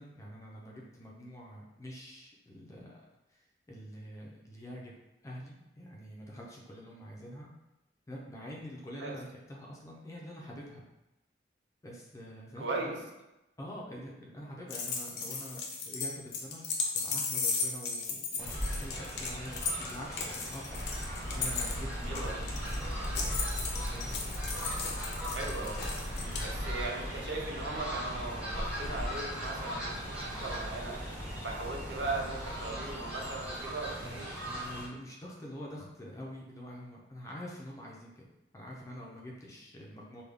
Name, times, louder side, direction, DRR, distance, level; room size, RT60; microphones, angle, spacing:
voice 1, 0.0-4.9 5.2-7.5 8.1-10.8 11.8-13.0 13.6-16.7 16.9-20.8 21.3-23.2 23.9-24.2 26.2-26.5 34.0-38.2 38.5-40.2, equal, 15° left, -2 dB, 0.5 m, -46 dB
voice 2, 12.6-13.0 22.1-22.4 25.3-25.8 26.4-31.0 31.4-34.3, right 3 dB, 75° right, 0 dB, 0.6 m, -38 dB
sound 1, 14.7-26.4, left 4 dB, 70° left, 0.5 m, -36 dB
Fowl, 18.4-34.9, equal, 5° right, 0.8 m, -40 dB
sound 2, 20.7-33.0, equal, 45° right, 1.4 m, -40 dB
3.4 x 2.2 x 3.5 m, 0.98 s
head